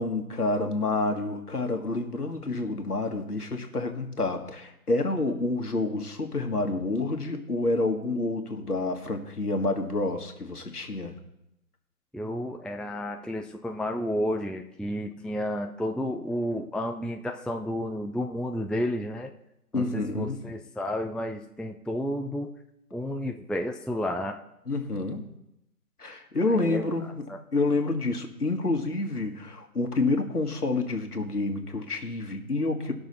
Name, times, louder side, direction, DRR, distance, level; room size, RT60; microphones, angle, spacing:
voice 1, 0.0-11.1 19.7-20.5 24.7-25.3 26.0-27.2 27.5-32.9, left 2 dB, 70° left, 4 dB, 1.7 m, -28 dB
voice 2, 12.1-19.3 19.7-22.5 22.9-24.4 26.5-27.0 27.3-27.4, left 1 dB, ahead, 3 dB, 0.4 m, -31 dB
18.5 x 6.2 x 4.1 m, 0.83 s
figure-of-eight pair, 180°, 47 cm